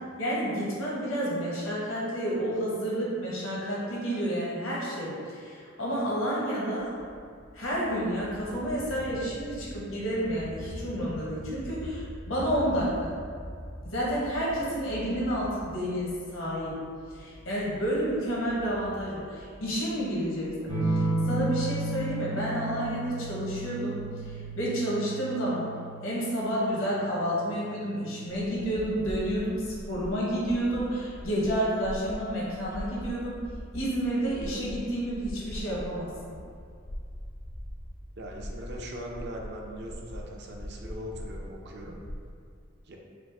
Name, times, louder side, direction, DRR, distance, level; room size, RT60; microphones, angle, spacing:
voice 1, 0.2-6.9 7.5-13.1 13.8-16.7 17.1-25.7 26.0-33.4 33.7-36.4, equal, 75° left, -6 dB, 1.1 m, -30 dB
sound 1, 6.8-24.6, equal, 60° left, 0.7 m, -45 dB
sound 2, 20.7-29.8 31.2-31.8, right 2 dB, 80° right, 1.2 m, -34 dB
sound 3, 28.3-42.3, equal, 25° left, 0.4 m, -42 dB
voice 2, 38.2-42.0 42.9-43.0, equal, 55° right, 0 dB, 0.5 m, -40 dB
4.9 x 2.0 x 3.4 m, 2.3 s
head